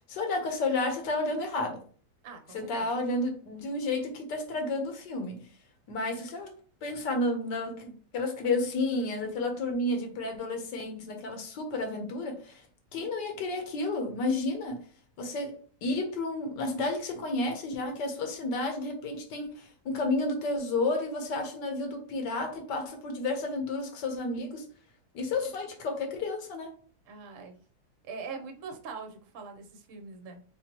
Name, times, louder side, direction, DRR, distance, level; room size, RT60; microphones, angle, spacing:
voice 1, 0.1-1.8 2.5-5.4 5.9-6.5 6.8-12.6 12.9-14.8 15.2-15.5 15.8-24.7 25.1-26.7, left 2 dB, 85° left, 1.6 m, -31 dB
voice 2, 2.2-2.9 27.1-27.6 28.1-30.4, right 5 dB, 55° right, 1.1 m, -42 dB
4.3 x 3.9 x 2.9 m
omnidirectional pair, 1.8 m